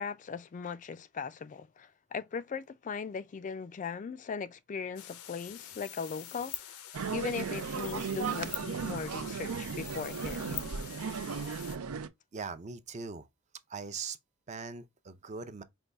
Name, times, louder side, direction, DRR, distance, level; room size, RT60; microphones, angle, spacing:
voice 1, 0.0-6.7 7.1-10.6, left 5 dB, 35° left, 0.3 m, -39 dB
sound 1, 5.0-11.8, left 11 dB, 85° left, 0.6 m, -45 dB
sound 2, 6.9-12.1, right 6 dB, 90° right, 0.5 m, -36 dB
voice 2, 12.3-13.3 13.7-14.2 14.5-15.6, right 5 dB, 35° right, 0.5 m, -40 dB
5.2 x 2.2 x 3.3 m
head